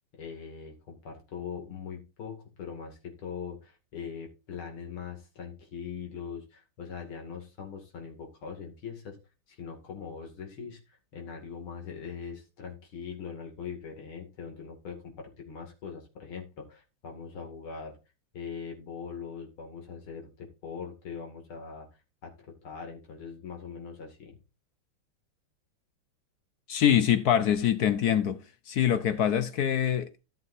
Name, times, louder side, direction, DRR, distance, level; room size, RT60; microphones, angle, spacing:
voice 1, 0.1-9.2 9.5-18.0 18.3-21.9 22.2-24.4, left 6 dB, 90° left, 3.2 m, -41 dB
voice 2, 26.7-28.4 28.7-30.2, left 9 dB, 65° left, 1.0 m, -24 dB
14.5 x 7.6 x 2.6 m
omnidirectional pair, 2.3 m